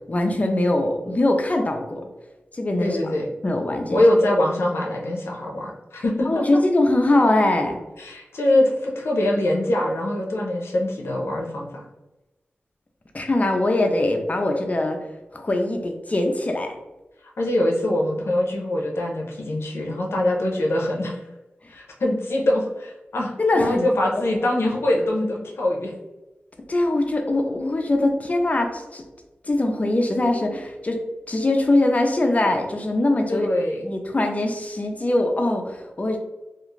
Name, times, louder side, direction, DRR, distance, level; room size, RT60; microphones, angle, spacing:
voice 1, 0.1-2.0 2.5-3.1 3.4-4.0 6.3-7.8 13.1-15.0 15.3-16.8 23.4-23.9 24.2-24.3 26.7-29.0 29.4-31.0 31.3-33.5 33.8-36.2, left 2 dB, 35° left, 3 dB, 0.5 m, -22 dB
voice 2, 2.8-3.3 3.9-6.3 8.0-11.8 17.4-21.2 21.7-25.9 33.3-33.8, left 1 dB, 85° left, -1 dB, 0.6 m, -23 dB
2.4 x 2.4 x 3.1 m, 1.0 s
cardioid pair, 55°, 4 cm